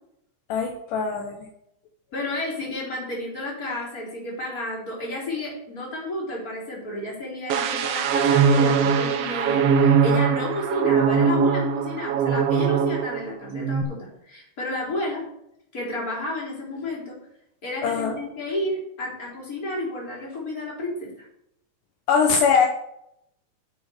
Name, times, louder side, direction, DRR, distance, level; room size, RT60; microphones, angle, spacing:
voice 1, 0.5-1.5 17.8-18.2 22.1-22.7, left 6 dB, 75° left, 3 dB, 2.5 m, -22 dB
voice 2, 2.1-15.3 15.7-17.1 17.6-21.1, left 1 dB, 25° left, -5 dB, 4.1 m, -31 dB
sound 1, 7.5-13.2 13.5-13.8, right 6 dB, 80° right, 1.4 m, -21 dB
11.5 x 6.2 x 4.8 m, 0.77 s
omnidirectional pair, 3.9 m